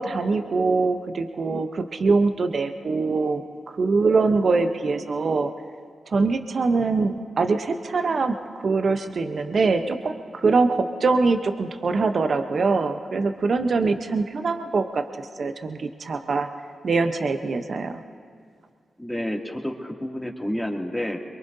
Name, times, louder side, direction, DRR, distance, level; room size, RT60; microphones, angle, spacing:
voice 1, 0.0-3.4 3.7-5.5 6.1-8.4 8.6-15.0 15.4-16.5 16.8-18.0, right 4 dB, 60° right, 7 dB, 0.8 m, -23 dB
voice 2, 19.0-21.2, equal, 5° left, 0 dB, 2.4 m, -29 dB
23.5 x 22.5 x 2.7 m, 2.2 s
supercardioid pair, 40°, 0 cm